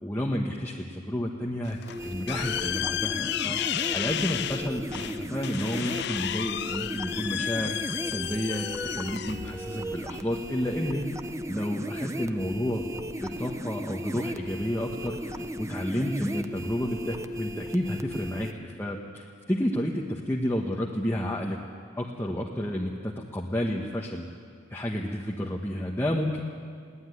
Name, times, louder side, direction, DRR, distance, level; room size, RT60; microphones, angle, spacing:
voice 1, 0.0-7.8 8.0-11.0 11.5-12.9 13.2-21.6 22.0-24.3 24.7-26.4, equal, 10° left, -2 dB, 1.3 m, -31 dB
sound 1, 1.7-10.7, left 11 dB, 55° left, 0.5 m, -33 dB
sound 2, 1.9-18.5, equal, 15° right, 0.8 m, -36 dB
21.5 x 17.5 x 9.9 m, 2.1 s
head